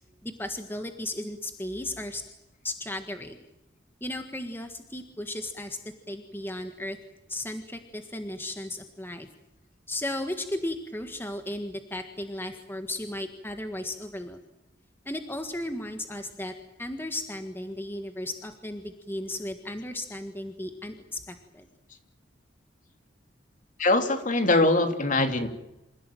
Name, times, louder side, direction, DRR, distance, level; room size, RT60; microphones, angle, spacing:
voice 1, 0.2-2.2 2.6-3.4 4.0-5.8 6.1-7.0 7.3-9.3 9.9-14.4 15.1-16.5 16.8-21.6, left 1 dB, 10° left, 6 dB, 1.6 m, -35 dB
voice 2, 23.8-25.5, left 2 dB, 45° left, 6 dB, 3.0 m, -22 dB
27.5 x 16.0 x 9.2 m, 0.92 s
head